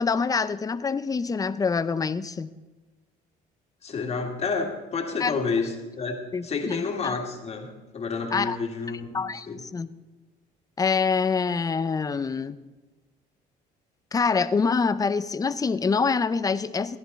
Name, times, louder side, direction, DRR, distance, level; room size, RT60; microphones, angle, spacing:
voice 1, 0.0-2.5 5.2-5.3 6.3-7.1 8.3-8.6 9.1-9.9 10.8-12.6 14.1-17.0, left 5 dB, 20° left, 13 dB, 0.6 m, -25 dB
voice 2, 3.8-9.2 9.5-9.6, left 4 dB, 40° left, 2 dB, 2.0 m, -30 dB
16.0 x 10.5 x 4.1 m, 1.2 s
cardioid pair, 110°, 17 cm